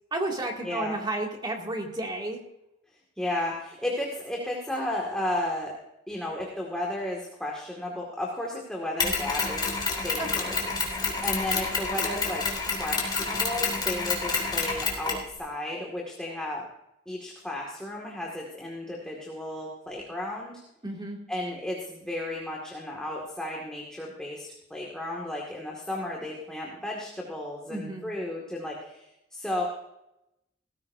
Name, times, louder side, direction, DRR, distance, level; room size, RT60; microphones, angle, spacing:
voice 1, 0.1-2.4 10.2-10.8 20.8-21.2 27.7-28.1, right 2 dB, 25° right, 0 dB, 2.5 m, -32 dB
voice 2, 0.6-1.0 3.2-5.7 6.1-9.7 10.0-10.6 11.2-16.6 17.1-20.6 21.3-29.6, left 1 dB, 5° left, -2 dB, 2.1 m, -33 dB
Mechanisms, 9.0-15.3, left 4 dB, 25° left, 3.1 m, -28 dB
18.5 x 15.0 x 2.7 m, 0.87 s
head